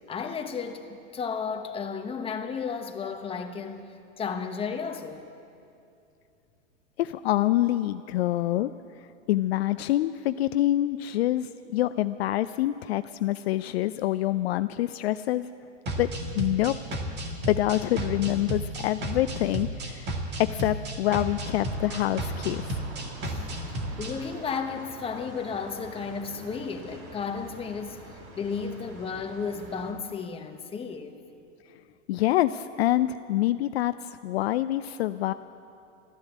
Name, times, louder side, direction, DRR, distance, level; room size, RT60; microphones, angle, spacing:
voice 1, 0.1-5.3 23.2-23.5 24.0-28.0 28.3-31.2, left 5 dB, 15° left, 5 dB, 1.0 m, -33 dB
voice 2, 7.0-8.7 9.3-15.5 16.0-16.7 17.5-20.1 20.4-22.6 32.1-33.9 34.2-35.3, left 14 dB, 60° left, 12 dB, 0.5 m, -26 dB
sound 1, 15.9-24.1, right 1 dB, 30° right, 1.9 m, -33 dB
sound 2, 21.5-29.9, right 2 dB, 45° right, 4.1 m, -45 dB
13.0 x 12.0 x 8.1 m, 2.5 s
hypercardioid pair, 115°, 37 cm